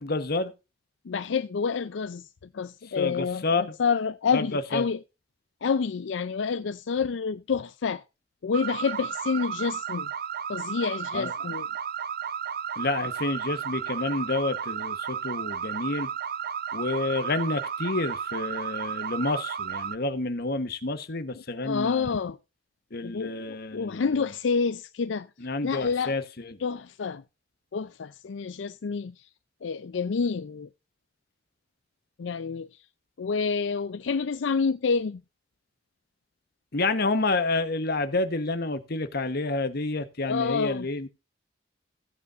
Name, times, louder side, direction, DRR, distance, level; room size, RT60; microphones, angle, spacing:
voice 1, 0.0-0.5 2.9-3.8 4.3-4.9 11.1-11.3 12.8-16.1 16.7-22.2 22.9-24.2 25.4-26.6 36.7-41.1, left 3 dB, 60° left, 1.1 m, -29 dB
voice 2, 1.1-2.3 2.5-5.0 5.6-8.0 8.4-10.1 10.5-11.7 21.6-22.4 23.0-25.3 25.6-26.1 26.6-27.2 27.7-29.1 29.6-30.7 32.2-32.7 33.2-35.2 40.2-40.9, left 5 dB, 80° left, 0.5 m, -28 dB
sound 1, 8.5-20.0, right 8 dB, 55° right, 0.5 m, -33 dB
16.5 x 8.3 x 2.5 m
head